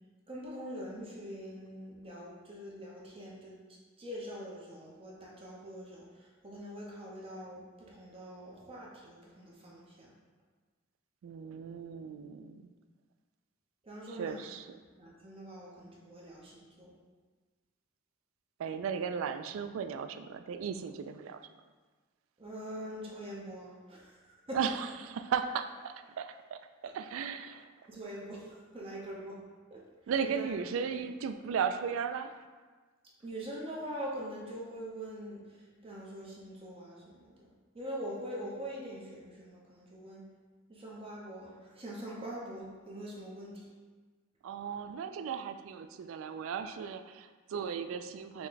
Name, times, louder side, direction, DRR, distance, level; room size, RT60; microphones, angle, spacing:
voice 1, 0.3-3.6 4.0-10.1 13.8-14.5 15.0-16.9 22.4-24.6 27.9-29.4 29.7-29.8 30.2-30.5 33.2-40.2 40.7-43.7, equal, 30° right, -4 dB, 0.7 m, -43 dB
voice 2, 11.2-12.6 14.2-14.8 18.6-21.4 24.5-24.9 25.2-27.7 30.1-32.4 44.4-48.5, right 7 dB, 75° right, 9 dB, 0.3 m, -36 dB
6.0 x 2.2 x 3.8 m, 1.4 s
head